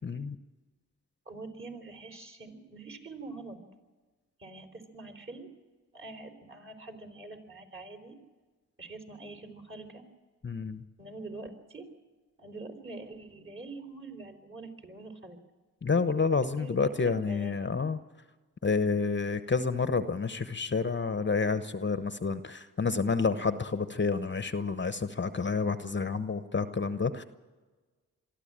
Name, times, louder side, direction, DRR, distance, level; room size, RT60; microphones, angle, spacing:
voice 1, 0.0-0.4 10.4-10.8 15.8-18.0 18.6-27.2, left 4 dB, 30° left, 11 dB, 0.9 m, -29 dB
voice 2, 1.3-3.6 4.4-5.5 5.9-8.2 8.8-10.0 11.0-11.9 12.4-15.4 16.4-17.7, right 2 dB, 35° right, 2 dB, 4.0 m, -45 dB
23.5 x 13.0 x 8.8 m, 1.3 s
cardioid pair, 55°, 36 cm